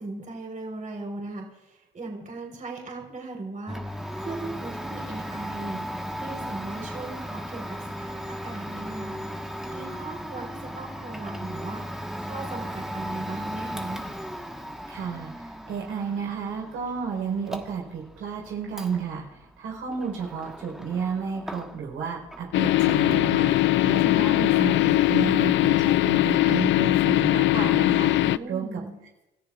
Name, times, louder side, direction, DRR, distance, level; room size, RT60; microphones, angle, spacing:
voice 1, 0.0-11.8 12.2-14.1 28.2-29.0, right 3 dB, 40° right, 0 dB, 4.3 m, -38 dB
Domestic sounds home sounds, 3.7-22.0 22.3-23.3, equal, ahead, 1.4 m, -37 dB
voice 2, 14.9-19.2 19.6-28.8, right 6 dB, 85° right, -1 dB, 4.5 m, -32 dB
sound 1, 22.5-28.4, left 16 dB, 70° left, 0.4 m, -21 dB
30.0 x 14.0 x 2.5 m, 0.94 s
cardioid pair, 90°, 20 cm